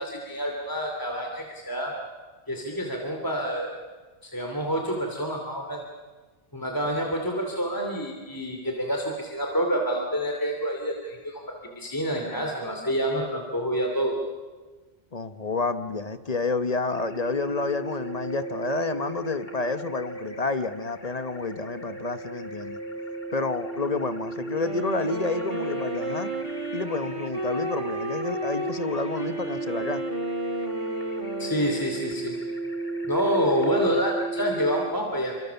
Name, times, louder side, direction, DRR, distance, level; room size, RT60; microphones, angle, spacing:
voice 1, 0.0-1.9 2.5-3.8 4.2-5.8 6.5-14.1 31.4-32.4 33.1-35.3, equal, 20° left, 1 dB, 2.8 m, -28 dB
voice 2, 15.1-22.8 23.3-26.3 26.7-30.0, left 3 dB, 40° left, 10 dB, 1.0 m, -29 dB
sound 1, 16.9-34.9, right 3 dB, 65° left, 2.8 m, -35 dB
Wind instrument woodwind instrument, 24.5-32.2, right 1 dB, 30° right, 2.0 m, -33 dB
28.0 x 25.5 x 7.0 m, 1.3 s
omnidirectional pair, 1.1 m